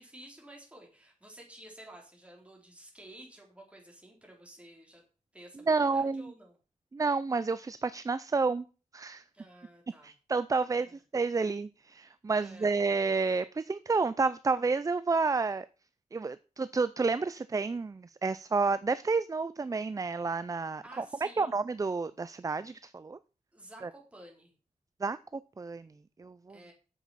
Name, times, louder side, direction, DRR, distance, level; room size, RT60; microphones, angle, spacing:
voice 1, 0.0-5.0 5.3-6.6 9.3-10.1 10.8-11.0 12.4-12.7 20.8-21.5 23.5-24.5 26.5-26.7, right 1 dB, 10° right, -1 dB, 3.9 m, -52 dB
voice 2, 5.6-6.3 6.9-8.7 8.9-9.2 10.0-15.7 16.1-23.2 23.8-23.9 25.0-25.9 26.2-26.6, right 4 dB, 25° right, 15 dB, 0.4 m, -30 dB
9.2 x 7.4 x 5.6 m, 0.35 s
wide cardioid pair, 120°, 13 cm